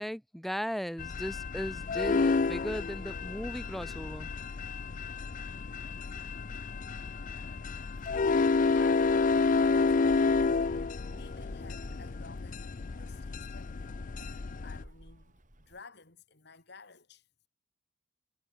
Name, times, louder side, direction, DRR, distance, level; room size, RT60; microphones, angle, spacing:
voice 1, 0.0-4.3, equal, ahead, 0.6 m, -37 dB
sound 1, 1.0-14.8, left 4 dB, 45° left, 0.5 m, -30 dB
Gull seagull, 6.5-15.8, equal, 45° right, 4.7 m, -54 dB
voice 2, 8.2-10.8 11.1-13.9 14.6-17.3, left 4 dB, 65° left, 3.6 m, -53 dB
head